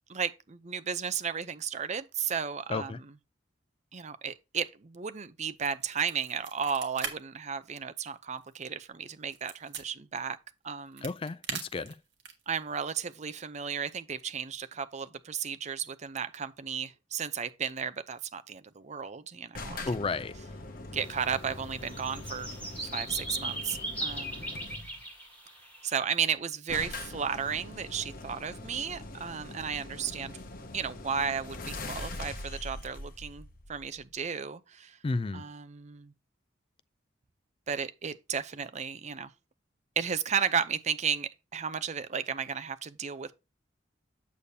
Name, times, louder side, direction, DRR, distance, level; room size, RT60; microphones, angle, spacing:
voice 1, 0.1-3.1 3.9-10.4 10.6-11.1 12.5-19.8 20.9-22.5 22.8-24.6 25.8-30.4 30.7-35.0 35.3-36.1 37.7-39.3 40.0-43.3, right 7 dB, 40° right, 0.6 m, -34 dB
sound 1, 5.6-7.1 7.5-7.6 8.0-9.8 10.6-12.5, right 7 dB, 65° right, 1.6 m, -40 dB
voice 2, 11.0-11.9 19.9-20.3 35.0-35.5, left 3 dB, 30° left, 0.4 m, -32 dB
sound 2, 19.5-25.1 26.1-26.2 26.3-26.4 26.7-34.2, left 2 dB, 50° left, 1.0 m, -42 dB
sound 3, 21.0-21.2 21.5-26.0, right 1 dB, 10° left, 5.3 m, -38 dB
8.4 x 6.8 x 2.8 m
head